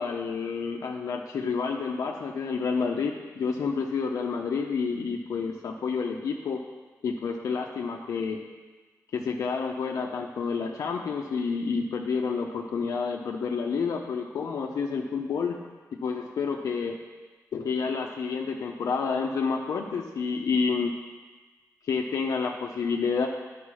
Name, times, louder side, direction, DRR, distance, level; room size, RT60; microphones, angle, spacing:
voice 1, 0.0-6.6 7.0-8.4 9.1-15.6 15.9-17.0 17.5-20.9 21.9-23.3, left 5 dB, 80° left, 1 dB, 0.7 m, -29 dB
10.0 x 5.2 x 6.2 m, 1.3 s
wide cardioid pair, 130°, 6 cm